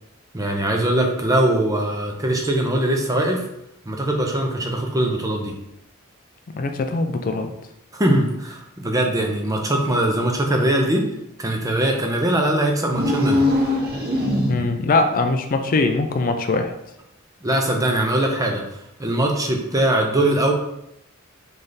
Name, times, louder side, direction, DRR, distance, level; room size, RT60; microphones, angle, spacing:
voice 1, 0.3-3.4 3.9-5.5 7.9-11.0 11.4-13.5 17.4-20.5, right 1 dB, 15° right, 2 dB, 0.6 m, -21 dB
voice 2, 6.5-7.5 14.5-16.7, left 3 dB, 40° left, 6 dB, 0.4 m, -21 dB
sound 1, 12.9-14.9, left 1 dB, 45° right, 1.0 m, -21 dB
3.9 x 3.3 x 3.9 m, 0.82 s
head